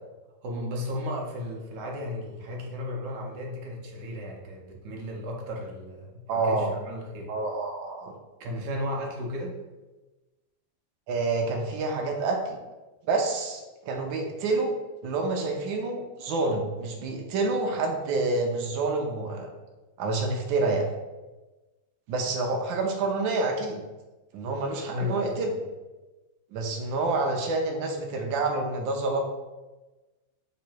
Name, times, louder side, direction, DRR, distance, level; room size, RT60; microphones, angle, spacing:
voice 1, 0.4-7.3 8.4-9.5 24.9-25.5, left 1 dB, 70° right, -1 dB, 1.4 m, -34 dB
voice 2, 6.3-6.7 7.3-8.1 11.1-12.6 13.1-14.7 15.0-19.5 20.0-20.8 22.1-23.8 24.3-25.5 26.5-29.2, right 3 dB, 90° right, 2 dB, 1.4 m, -28 dB
3.7 x 3.1 x 4.4 m, 1.2 s
omnidirectional pair, 2.0 m